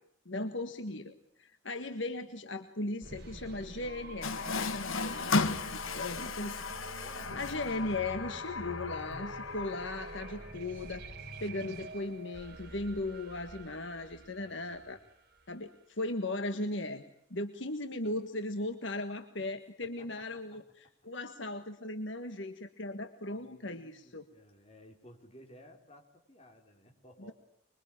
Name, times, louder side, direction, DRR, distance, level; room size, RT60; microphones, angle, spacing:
voice 1, 0.2-6.6 7.3-15.0 15.5-17.0 17.3-20.6 21.0-24.2, left 2 dB, 65° left, 8 dB, 1.6 m, -37 dB
sound 1, 3.0-15.7, right 2 dB, 50° right, 4.1 m, -47 dB
Water tap faucet, 4.2-10.5, left 4 dB, 80° left, 1.4 m, -35 dB
voice 2, 7.0-7.4 14.4-15.0 19.8-20.4 20.8-20.9 23.3-27.3, equal, 30° left, 3 dB, 4.7 m, -57 dB
25.5 x 23.5 x 8.9 m, 0.70 s
head